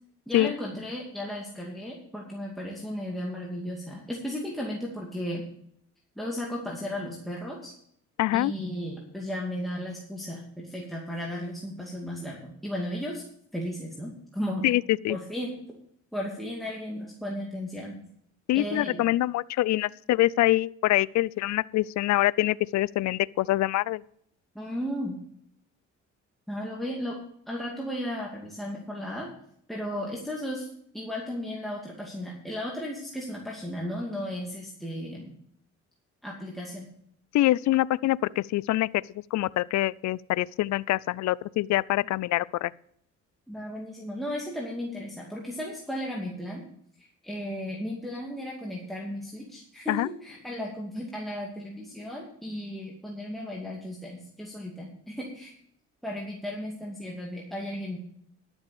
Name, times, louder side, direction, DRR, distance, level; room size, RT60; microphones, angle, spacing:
voice 1, 0.3-5.4 6.2-7.7 8.3-13.2 13.5-14.6 15.1-15.6 16.1-18.0 18.5-19.1 24.5-25.2 26.5-27.2 27.5-29.3 29.7-30.7 30.9-35.3 36.2-36.9 43.5-46.6 47.0-55.5 56.0-58.0, equal, ahead, -3 dB, 2.3 m, -35 dB
voice 2, 8.2-8.5 14.6-15.2 18.5-24.0 37.3-38.9 39.3-42.7 49.9-50.1, left 16 dB, 65° left, 22 dB, 0.4 m, -25 dB
11.5 x 7.1 x 6.9 m, 0.69 s
cardioid pair, 90°, 30 cm